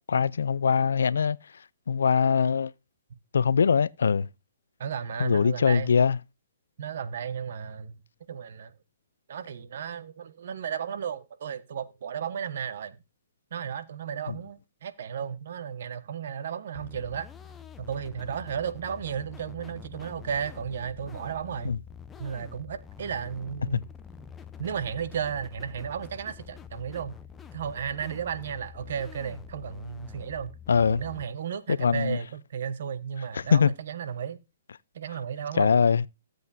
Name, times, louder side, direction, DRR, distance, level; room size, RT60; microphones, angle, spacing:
voice 1, 0.1-1.4 1.9-2.7 3.3-4.3 5.2-6.2 14.3-14.4 21.7-21.8 23.7-23.8 30.7-31.0 31.7-32.2 33.5-33.7 35.6-36.0, left 6 dB, 85° left, 0.4 m, -22 dB
voice 2, 4.8-5.9 6.8-8.0 8.3-8.7 9.3-13.0 13.5-17.3 17.8-21.7 22.2-23.8 24.6-27.1 27.5-30.5 30.9-34.4 34.9-35.7, right 7 dB, 60° right, 1.0 m, -34 dB
sound 1, 16.7-31.2, left 8 dB, 10° left, 0.6 m, -46 dB
15.0 x 7.7 x 2.7 m
hypercardioid pair, 155°, 0 cm